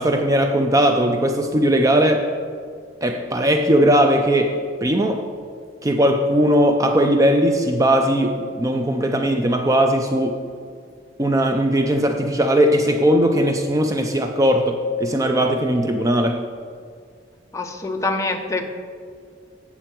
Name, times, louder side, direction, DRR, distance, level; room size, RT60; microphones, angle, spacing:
voice 1, 0.0-2.3 3.0-5.3 5.8-10.4 11.2-16.4, equal, 20° right, 5 dB, 0.4 m, -18 dB
voice 2, 17.5-18.6, left 3 dB, 15° left, 4 dB, 0.7 m, -25 dB
8.6 x 6.9 x 4.5 m, 2.1 s
head